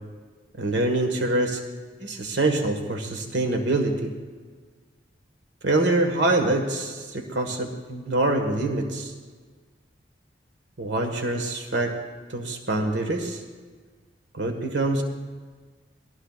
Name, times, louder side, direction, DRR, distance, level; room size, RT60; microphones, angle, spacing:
voice 1, 0.6-1.6 2.0-4.1 5.6-9.1 10.8-12.0 12.3-13.4 14.3-15.0, right 2 dB, 80° right, 4 dB, 1.6 m, -25 dB
27.5 x 20.0 x 2.4 m, 1.5 s
head